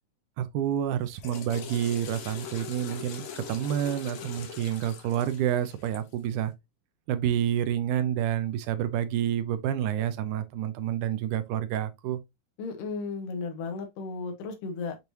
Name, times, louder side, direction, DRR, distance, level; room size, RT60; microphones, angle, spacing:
voice 1, 0.4-6.5 7.1-12.2, right 10 dB, 80° right, 1.9 m, -29 dB
Water / Toilet flush, 0.9-6.2, left 7 dB, 65° left, 2.1 m, -42 dB
voice 2, 12.6-15.0, left 4 dB, 90° left, 2.5 m, -34 dB
6.7 x 3.1 x 2.5 m
omnidirectional pair, 3.8 m